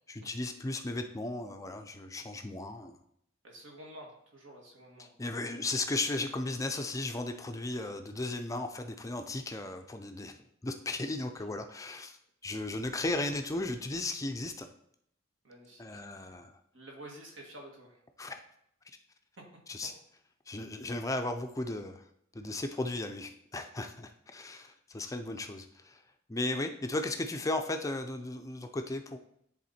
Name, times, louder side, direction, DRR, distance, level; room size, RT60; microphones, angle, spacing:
voice 1, 0.1-3.0 5.0-12.2 12.4-14.7 15.8-16.5 18.2-18.4 19.7-19.9 20.5-22.0 22.3-26.0 26.3-29.2, left 2 dB, 15° left, 6 dB, 0.4 m, -36 dB
voice 2, 3.4-5.1 5.4-5.6 15.4-16.0 16.7-18.0, right 1 dB, 70° right, -1 dB, 2.1 m, -50 dB
10.5 x 3.6 x 4.2 m, 0.72 s
head